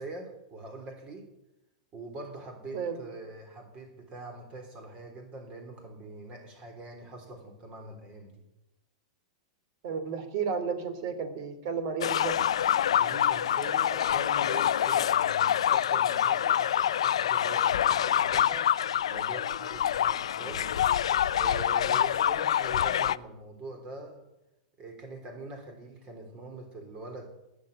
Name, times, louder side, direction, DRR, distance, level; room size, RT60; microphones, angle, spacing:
voice 1, 0.0-1.3 1.9-8.4 12.9-18.8 19.1-20.7 21.4-24.3 24.8-27.3, right 2 dB, 35° right, 4 dB, 3.6 m, -43 dB
voice 2, 9.8-12.4, right 6 dB, 55° right, 10 dB, 2.9 m, -32 dB
sound 1, 12.0-23.2, left 10 dB, 80° left, 0.5 m, -26 dB
sound 2, 20.3-22.5, right 2 dB, 80° right, 2.8 m, -49 dB
20.0 x 7.6 x 8.8 m, 0.90 s
hypercardioid pair, 115°, 3 cm